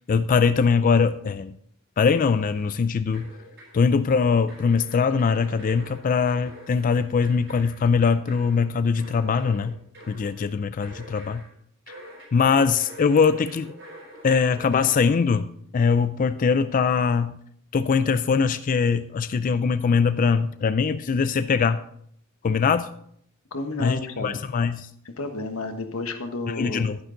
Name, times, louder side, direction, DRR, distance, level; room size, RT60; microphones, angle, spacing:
voice 1, 0.0-1.5 2.0-3.3 3.7-9.8 10.1-11.4 12.3-13.7 14.2-17.4 17.7-21.8 22.4-22.9 23.8-24.9 26.6-27.0, left 5 dB, 40° left, 12 dB, 0.3 m, -22 dB
sound 1, 2.1-2.8 3.1-3.8 4.5-11.5 11.9-15.1, right 1 dB, 60° right, 5.3 m, -46 dB
voice 2, 23.5-24.4 25.0-26.9, left 2 dB, 90° left, 6 dB, 1.3 m, -31 dB
11.0 x 10.0 x 3.8 m, 0.68 s
head